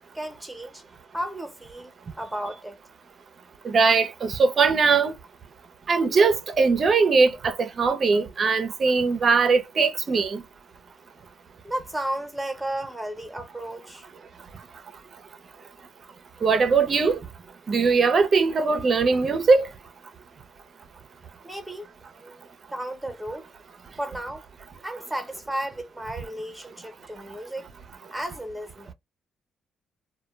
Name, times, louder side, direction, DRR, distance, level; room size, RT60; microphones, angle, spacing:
voice 1, 0.1-0.8 1.1-2.8 11.6-14.1 21.4-23.5 24.0-24.5 24.8-27.7 28.1-28.9, right 1 dB, 5° right, 0.9 m, -34 dB
voice 2, 3.6-5.1 5.9-10.4 16.4-17.2 17.7-19.7, right 4 dB, 45° right, 0.5 m, -20 dB
2.2 x 2.1 x 3.1 m
cardioid pair, 90°, 0 cm